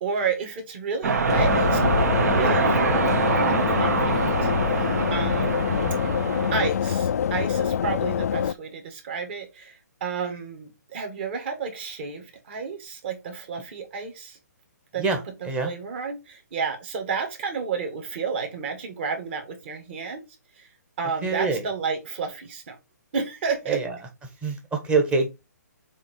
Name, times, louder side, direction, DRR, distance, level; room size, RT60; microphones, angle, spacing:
voice 1, 0.0-1.8 2.2-4.1 4.4-5.8 6.5-14.4 14.9-20.3 20.5-20.7 21.0-22.8 23.1-23.8, right 5 dB, 40° right, 2.0 m, -31 dB
sound 1, 1.0-6.7, right 5 dB, 60° right, 1.2 m, -24 dB
sound 2, 1.3-8.5, left 8 dB, 60° left, 0.3 m, -25 dB
voice 2, 21.2-21.6 23.7-23.9 24.4-25.3, right 4 dB, 10° right, 1.1 m, -24 dB
7.1 x 3.1 x 4.6 m
hypercardioid pair, 160°, 10 cm